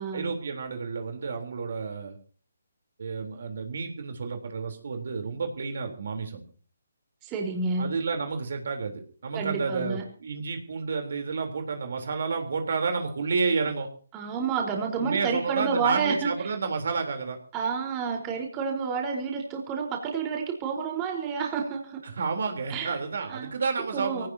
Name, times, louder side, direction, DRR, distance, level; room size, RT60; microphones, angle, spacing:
voice 1, 0.1-2.2 3.0-6.4 7.8-13.9 14.9-17.4 22.0-24.3, right 4 dB, 60° right, 5 dB, 3.7 m, -30 dB
voice 2, 7.2-7.9 9.3-10.0 14.1-16.3 17.5-22.0 22.7-22.9 23.3-23.5 23.9-24.3, right 5 dB, 20° right, 1 dB, 4.3 m, -29 dB
24.5 x 18.0 x 2.9 m, 0.42 s
hypercardioid pair, 155°, 0 cm